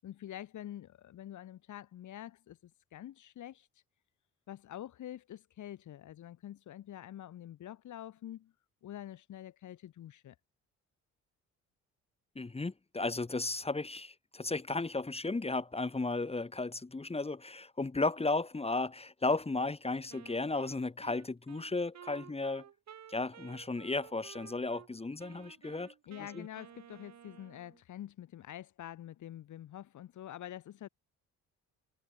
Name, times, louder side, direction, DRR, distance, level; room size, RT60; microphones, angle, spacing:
voice 1, 0.0-3.7 4.5-8.5 8.8-10.3 26.1-30.9, left 12 dB, 75° left, 6.6 m, -46 dB
voice 2, 12.3-22.6 23.1-25.9 26.3-26.5, left 3 dB, 20° left, 3.1 m, -34 dB
Wind instrument woodwind instrument, 20.1-24.9 25.2-27.8, right 9 dB, 60° right, 6.0 m, -54 dB
cardioid pair, 90°, 30 cm